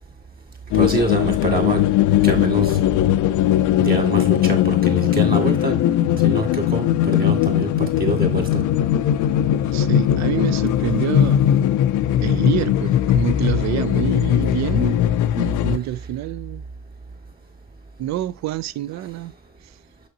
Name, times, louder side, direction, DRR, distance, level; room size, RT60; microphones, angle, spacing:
sound 1, 0.7-15.8, left 11 dB, 80° left, 0.5 m, -19 dB
voice 1, 0.7-1.8 2.2-2.8 3.8-5.8 6.2-8.6, right 2 dB, 30° right, 2.2 m, -25 dB
voice 2, 9.7-11.5 12.2-15.0 15.4-16.7 18.0-19.3 19.6-19.7, right 13 dB, 65° right, 0.4 m, -27 dB
6.3 x 5.4 x 2.8 m
cardioid pair, 90°, 30 cm